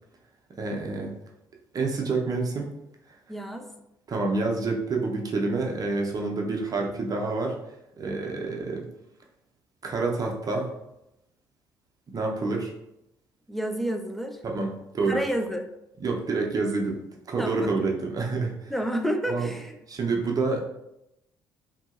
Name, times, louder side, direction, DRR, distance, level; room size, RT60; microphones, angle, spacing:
voice 1, 0.6-1.2 1.7-2.7 4.1-7.6 8.0-8.9 9.8-10.7 12.1-12.7 14.4-15.2 16.0-17.0 17.3-18.7 19.3-19.5 19.9-20.6, right 3 dB, 35° right, 0 dB, 0.7 m, -28 dB
voice 2, 3.3-3.7 13.5-14.4 15.1-15.7 17.4-17.8 18.7-19.8, equal, ahead, 5 dB, 0.4 m, -29 dB
2.8 x 2.6 x 2.4 m, 0.86 s
hypercardioid pair, 50°, 10 cm